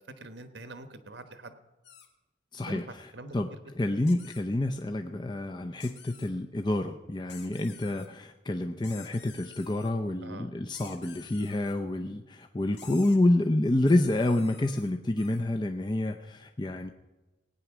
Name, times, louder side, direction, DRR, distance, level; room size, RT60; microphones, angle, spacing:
voice 1, 0.0-1.6 2.7-2.8 3.1-3.6 10.2-10.5, right 2 dB, 75° right, 9 dB, 1.2 m, -44 dB
sound 1, 1.8-2.1 4.0-4.4 5.8-6.3 7.3-8.1 8.8-9.9 10.7-11.7 12.7-13.2 13.9-15.4, left 8 dB, 75° left, 1.9 m, -51 dB
voice 2, 2.5-3.5 3.7-16.9, left 1 dB, 25° left, 4 dB, 0.5 m, -28 dB
18.0 x 9.3 x 6.1 m, 1.1 s
head